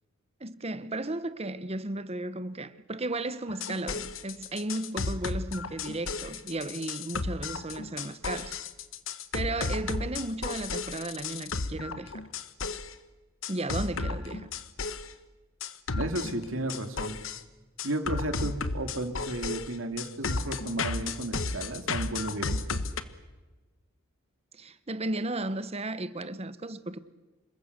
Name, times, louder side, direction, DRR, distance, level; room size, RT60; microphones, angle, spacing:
voice 1, 0.4-8.6 9.3-12.1 13.5-14.5 24.5-27.0, right 2 dB, 30° right, 1.1 m, -34 dB
sound 1, 3.5-12.9 13.4-15.1 15.6-17.4 17.8-23.0, left 4 dB, 70° left, 1.2 m, -33 dB
voice 2, 15.9-17.2 17.8-22.8, right 1 dB, 70° right, 2.6 m, -33 dB
27.5 x 22.5 x 6.8 m
head